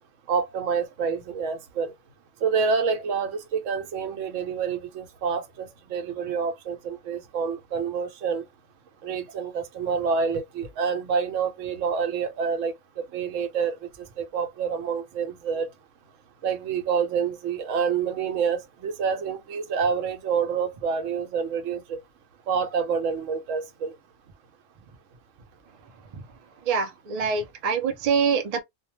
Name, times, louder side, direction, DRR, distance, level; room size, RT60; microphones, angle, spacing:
voice 1, 0.3-1.9 2.4-8.4 9.0-12.7 13.1-15.7 16.4-22.0 22.5-23.9, right 6 dB, 80° right, 1.0 m, -27 dB
voice 2, 26.7-28.6, right 5 dB, 65° right, 0.3 m, -25 dB
2.2 x 2.1 x 2.9 m
omnidirectional pair, 1.3 m